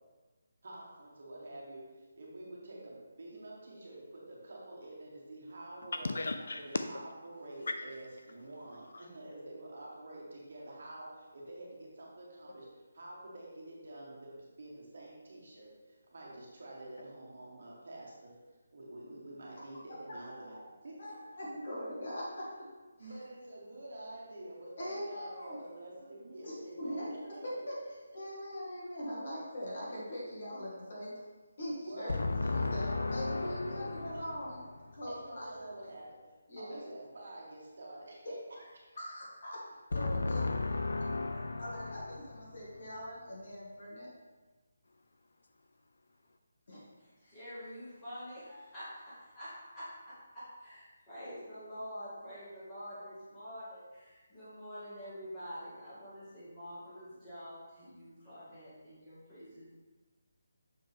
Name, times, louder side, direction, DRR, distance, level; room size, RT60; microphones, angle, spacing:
voice 1, 0.6-1.8 2.2-6.2 6.5-12.7 12.9-18.4 18.7-21.1 23.0-27.1 27.3-27.7 28.1-28.2 31.8-32.6 33.0-34.0 35.1-36.2 36.6-38.4, right 1 dB, 50° right, 1.7 m, -48 dB
voice 2, 5.9-6.6 8.9-9.1 32.1-34.4 39.9-42.6, left 3 dB, 65° left, 0.4 m, -35 dB
voice 3, 21.0-22.7 23.0-23.1 24.8-25.6 26.4-27.1 28.1-31.2 31.6-32.1 32.7-34.6 34.9-35.4 36.5-36.8 39.0-39.6 39.9-40.8 41.6-44.1 46.7-46.9, equal, 40° left, 2.1 m, -41 dB
voice 4, 47.0-59.7, equal, 10° left, 2.0 m, -47 dB
6.7 x 5.3 x 3.6 m
hypercardioid pair, 180°, 0 cm